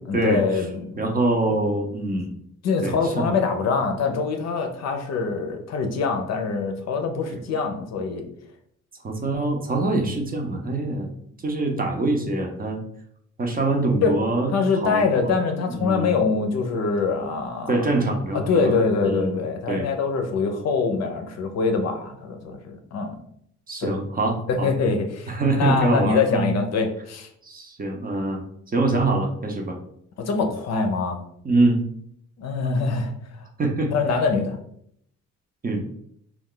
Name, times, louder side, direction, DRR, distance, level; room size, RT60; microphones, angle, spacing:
voice 1, 0.1-1.2 1.5-1.6 2.6-8.3 14.0-14.2 14.5-17.8 18.3-23.2 23.8-23.9 24.5-27.3 30.2-31.2 32.4-33.5 33.9-34.6, left 4 dB, 60° left, 5 dB, 0.6 m, -24 dB
voice 2, 1.0-2.3 2.8-3.3 9.0-11.1 11.4-12.8 13.4-14.5 14.8-15.3 15.7-16.1 17.7-18.7 19.0-19.4 19.7-19.9 23.7-24.7 25.3-26.5 27.4-28.4 28.7-29.8 31.4-31.8 33.6-33.9 35.6-35.8, right 2 dB, 30° right, 3 dB, 0.6 m, -24 dB
2.3 x 2.3 x 3.7 m, 0.69 s
cardioid pair, 90°, 30 cm